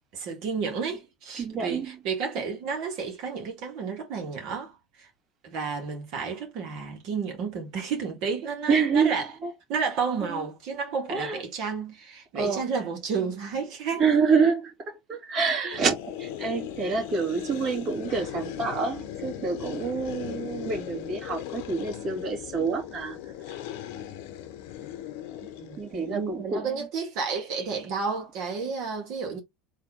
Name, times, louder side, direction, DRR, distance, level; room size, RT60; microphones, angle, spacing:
voice 1, 0.1-5.1 5.4-9.3 9.7-14.1 25.4-29.4, right 5 dB, 60° right, 1.9 m, -31 dB
voice 2, 1.4-1.9 8.7-9.2 9.4-9.5 10.3-10.4 11.1-11.4 12.3-12.7 14.0-23.2 25.8-26.8, right 5 dB, 45° right, 2.3 m, -27 dB
sound 1, 15.7-26.2, left 11 dB, 70° left, 0.8 m, -38 dB
4.1 x 2.9 x 3.6 m
hypercardioid pair, 85°, 0 cm